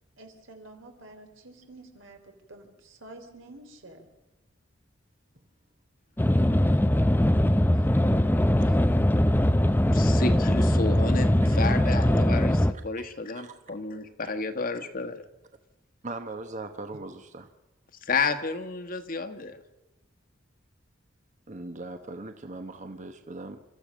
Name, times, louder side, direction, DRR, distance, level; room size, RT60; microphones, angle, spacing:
voice 1, 0.2-4.1, right 2 dB, 85° right, 5 dB, 3.4 m, -49 dB
sound 1, 6.2-12.7, left 1 dB, 10° left, 0.6 m, -21 dB
voice 2, 9.9-15.2 18.0-19.6, left 4 dB, 45° left, 8 dB, 1.4 m, -31 dB
voice 3, 16.0-17.5 21.5-23.6, right 2 dB, 40° right, 7 dB, 1.1 m, -39 dB
29.5 x 14.0 x 6.3 m, 1.0 s
head